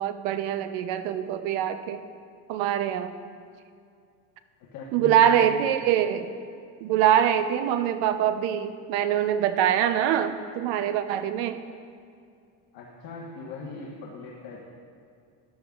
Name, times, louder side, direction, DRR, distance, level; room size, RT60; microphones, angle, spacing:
voice 1, 0.0-2.0 2.5-3.2 4.9-6.3 6.8-11.6, right 10 dB, 75° right, 10 dB, 0.7 m, -24 dB
voice 2, 4.6-5.5 12.7-14.6, left 4 dB, 55° left, -3 dB, 1.3 m, -40 dB
13.5 x 10.5 x 2.4 m, 2.3 s
cardioid pair, 155°, 44 cm